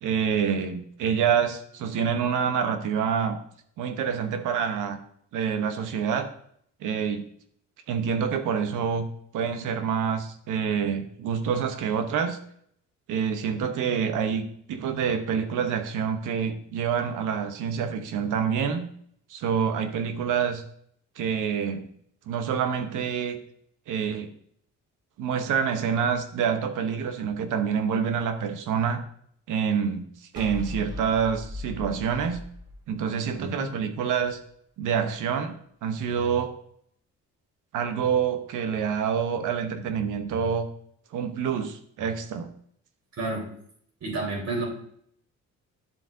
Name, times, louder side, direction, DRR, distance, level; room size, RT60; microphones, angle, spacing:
voice 1, 0.0-3.4 3.8-5.0 5.3-6.3 6.8-7.2 7.9-9.1 9.3-12.4 13.1-18.9 19.3-20.6 21.2-21.9 22.3-23.4 23.9-24.3 25.2-29.0 29.5-30.1 30.3-32.4 32.9-34.4 34.8-35.6 35.8-36.5 37.7-40.7 41.1-42.5, right 7 dB, 85° right, 8 dB, 1.0 m, -27 dB
sound 1, 30.3-33.6, left 2 dB, 15° right, 2.9 m, -38 dB
voice 2, 44.0-44.7, right 2 dB, 60° right, -2 dB, 3.9 m, -30 dB
10.5 x 7.4 x 2.7 m, 0.66 s
cardioid pair, 90°, 30 cm